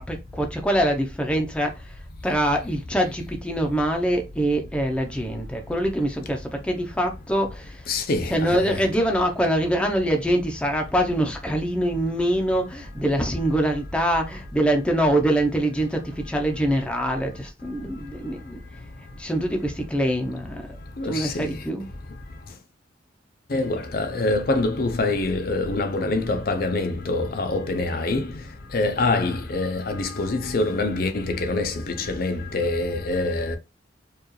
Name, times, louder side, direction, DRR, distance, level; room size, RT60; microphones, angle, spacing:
voice 1, 0.0-7.9 8.3-18.6 19.2-20.7 21.0-21.9, right 1 dB, 5° left, 0.6 m, -24 dB
voice 2, 7.9-8.2 8.5-8.7 21.0-21.1 23.5-28.2 28.7-31.7 32.2-33.6, left 2 dB, 50° left, 0.5 m, -24 dB
4.6 x 2.4 x 3.1 m
head